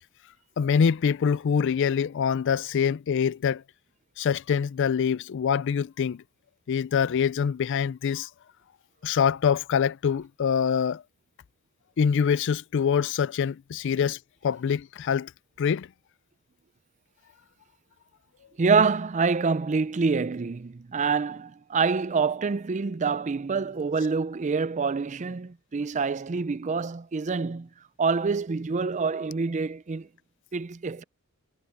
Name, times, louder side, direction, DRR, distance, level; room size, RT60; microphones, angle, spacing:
voice 1, 0.6-3.6 4.2-6.2 6.7-8.3 9.0-11.0 12.0-15.3 15.6-15.9, left 7 dB, 55° left, 0.4 m, -25 dB
voice 2, 18.6-27.7 28.0-30.1 30.5-31.0, right 4 dB, 30° right, 0.4 m, -26 dB
head